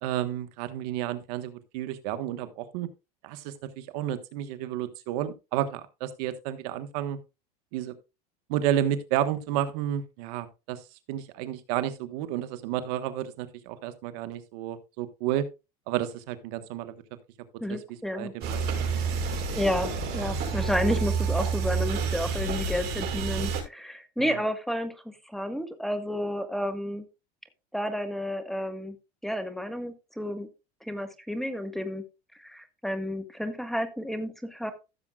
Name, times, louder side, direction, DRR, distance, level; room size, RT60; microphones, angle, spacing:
voice 1, 0.0-2.9 3.2-7.2 7.7-7.9 8.5-10.8 11.1-15.4 15.9-16.9 17.7-17.8 18.1-18.6 24.2-24.4, right 11 dB, 75° right, 11 dB, 1.4 m, -31 dB
voice 2, 17.6-18.3 19.0-27.0 27.7-28.9 29.2-30.5 30.8-32.0 32.4-34.7, equal, ahead, 9 dB, 1.5 m, -31 dB
sound 1, 18.4-23.6, right 5 dB, 55° right, 5.6 m, -29 dB
15.5 x 7.4 x 2.4 m, 0.27 s
supercardioid pair, 115°, 21 cm